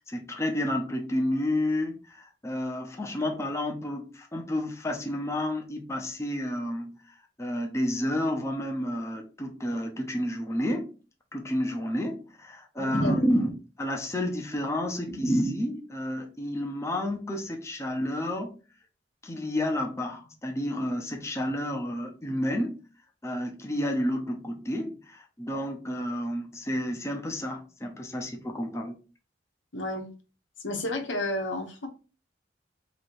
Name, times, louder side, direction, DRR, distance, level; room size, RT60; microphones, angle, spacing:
voice 1, 0.0-7.0 7.4-10.9 11.3-13.5 13.8-18.6 19.2-22.8 23.2-28.9, left 1 dB, 15° left, 0.6 m, -30 dB
voice 2, 12.8-13.2 15.1-15.2 29.7-30.1 30.6-31.9, left 1 dB, 90° left, 1.1 m, -32 dB
3.1 x 3.0 x 4.4 m
head